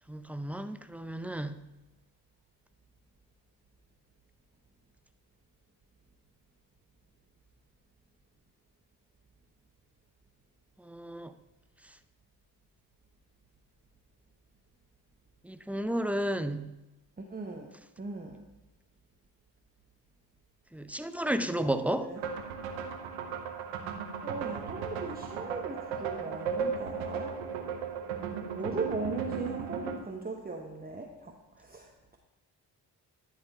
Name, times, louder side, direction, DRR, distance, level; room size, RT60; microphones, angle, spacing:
voice 1, 0.1-1.6 10.8-11.3 15.4-16.7 20.7-22.1, right 1 dB, 5° right, 10 dB, 0.5 m, -32 dB
voice 2, 17.2-17.7 18.0-18.4 21.4-22.2 24.2-27.4 28.5-32.2, right 3 dB, 20° right, 1 dB, 1.0 m, -39 dB
sound 1, 22.2-30.0, right 6 dB, 85° right, 0.9 m, -36 dB
11.0 x 4.1 x 5.4 m, 1.0 s
hypercardioid pair, 45°, 46 cm